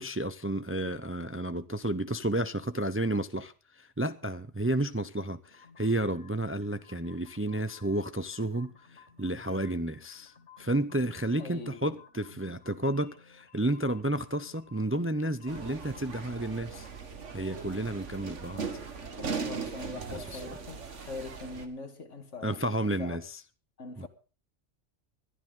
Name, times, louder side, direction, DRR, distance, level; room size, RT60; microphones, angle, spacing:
voice 1, 0.0-10.3 10.6-16.9 17.3-18.7 20.1-20.4 22.4-23.2 24.0-24.1, right 1 dB, 20° right, 0.4 m, -31 dB
sound 1, 5.5-16.3, left 5 dB, 75° left, 2.8 m, -57 dB
voice 2, 11.4-12.0 18.1-18.2 19.2-23.2 23.8-24.1, left 3 dB, 90° left, 2.2 m, -42 dB
sound 2, 15.5-21.7, right 5 dB, 80° right, 1.9 m, -39 dB
21.0 x 12.5 x 3.8 m
omnidirectional pair, 1.2 m